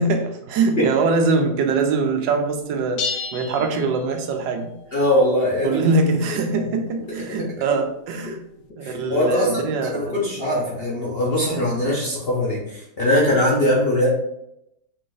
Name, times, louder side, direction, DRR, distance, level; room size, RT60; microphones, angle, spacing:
voice 1, 0.0-4.7 5.6-8.4 8.8-10.2, right 3 dB, 85° right, 5 dB, 1.3 m, -22 dB
sound 1, 3.0-4.6, left 5 dB, 75° left, 1.1 m, -31 dB
voice 2, 4.9-5.9 6.5-6.6 7.3-7.5 8.8-14.1, left 1 dB, 50° left, -4 dB, 0.7 m, -21 dB
4.8 x 2.5 x 3.8 m, 0.82 s
omnidirectional pair, 1.9 m